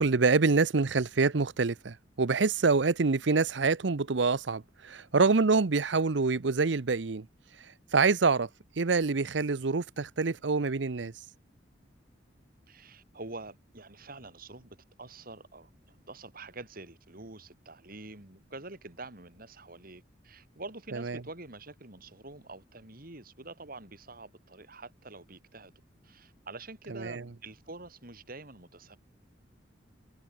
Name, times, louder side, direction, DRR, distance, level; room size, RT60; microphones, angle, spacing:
voice 1, 0.0-7.3 7.9-8.5 8.8-11.1 21.0-21.2 26.9-27.2, right 4 dB, 70° right, 0.7 m, -26 dB
voice 2, 12.7-25.7 26.0-29.0, right 2 dB, 50° right, 4.1 m, -46 dB
head